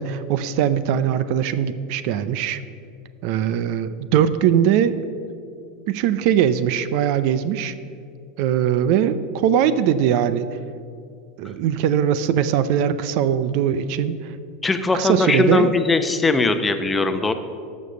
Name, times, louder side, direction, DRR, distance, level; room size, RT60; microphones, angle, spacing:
voice 1, 0.0-2.6 3.2-5.0 5.9-7.7 8.4-10.5 11.4-14.3 14.9-15.7, right 9 dB, 60° right, 14 dB, 0.5 m, -21 dB
voice 2, 14.6-17.3, left 3 dB, 15° left, 8 dB, 0.8 m, -20 dB
14.0 x 5.4 x 6.8 m, 2.4 s
hypercardioid pair, 95°, 0 cm